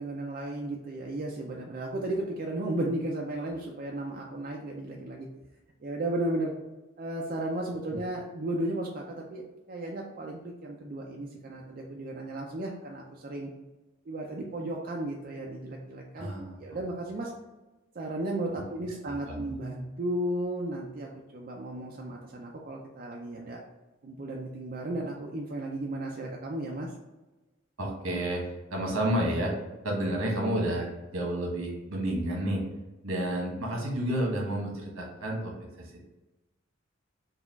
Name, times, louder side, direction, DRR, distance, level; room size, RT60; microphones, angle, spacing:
voice 1, 0.0-5.3 5.8-6.5 7.0-13.5 14.1-16.3 16.6-17.3 17.9-23.6 24.0-26.9, right 1 dB, 45° right, -1 dB, 0.4 m, -34 dB
voice 2, 16.2-16.6 19.1-19.6 27.8-28.4 28.7-29.5 29.8-32.6 33.0-36.0, right 1 dB, 80° right, -1 dB, 1.2 m, -30 dB
4.0 x 2.3 x 3.9 m, 1.1 s
head